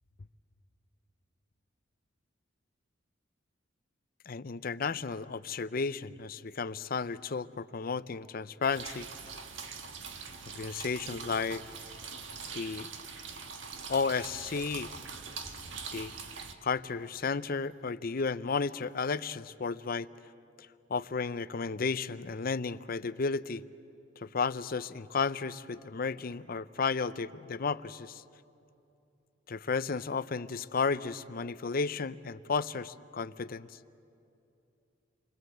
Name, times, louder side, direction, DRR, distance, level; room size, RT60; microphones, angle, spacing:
voice 1, 4.3-9.1 10.5-11.6 12.5-12.9 13.9-14.9 15.9-16.1 16.6-20.1 20.9-23.6 24.2-28.2 29.5-33.7, left 5 dB, 50° left, 15 dB, 0.6 m, -33 dB
sound 1, 8.7-16.5, right 5 dB, 75° right, 1.6 m, -43 dB
29.0 x 24.0 x 7.9 m, 2.8 s
head